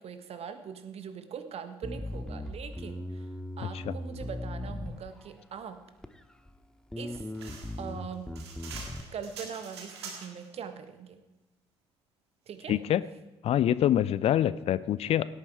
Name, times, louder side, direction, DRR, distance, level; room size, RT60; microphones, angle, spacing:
voice 1, 0.0-3.3 3.6-5.8 7.0-8.4 9.1-11.2 12.5-12.8, right 7 dB, 50° right, 10 dB, 1.4 m, -42 dB
Bass guitar, 1.8-5.4 6.0-6.6 6.9-9.0, left 1 dB, 5° left, 1.0 m, -38 dB
sound 1, 7.3-10.5, right 5 dB, 80° right, 2.1 m, -44 dB
voice 2, 12.7-13.0 13.4-15.3, left 11 dB, 50° left, 17 dB, 0.5 m, -25 dB
17.0 x 8.9 x 4.6 m, 1.1 s
figure-of-eight pair, 45°, 14 cm